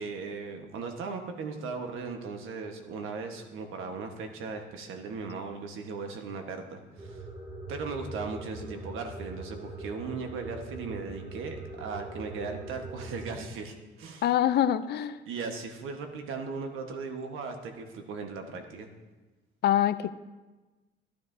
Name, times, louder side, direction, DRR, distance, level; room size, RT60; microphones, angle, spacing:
voice 1, 0.0-7.2 7.7-14.3 15.3-18.9, right 4 dB, 85° right, 5 dB, 1.2 m, -37 dB
sound 1, 7.0-13.3, right 2 dB, 20° right, 2.4 m, -42 dB
voice 2, 14.2-15.2 19.6-20.1, left 11 dB, 55° left, 14 dB, 0.4 m, -24 dB
12.0 x 12.0 x 2.7 m, 1.2 s
cardioid pair, 145°, 20 cm